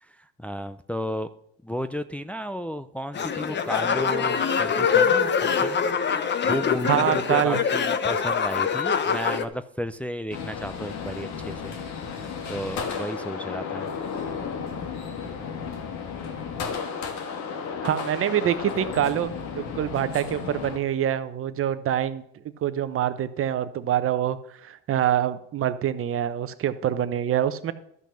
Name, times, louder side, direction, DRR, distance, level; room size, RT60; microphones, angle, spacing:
voice 1, 0.0-1.3 1.6-5.8 6.4-11.8 12.2-13.9, equal, 5° left, 9 dB, 0.4 m, -33 dB
sound 1, 3.1-9.4, left 6 dB, 30° left, 1.0 m, -24 dB
voice 2, 6.8-7.6 17.8-22.2 22.6-24.4 24.6-27.7, right 10 dB, 40° right, 13 dB, 1.0 m, -25 dB
sound 2, 10.3-20.8, left 6 dB, 50° left, 2.0 m, -33 dB
12.5 x 5.9 x 5.7 m, 0.71 s
hypercardioid pair, 85°, 35 cm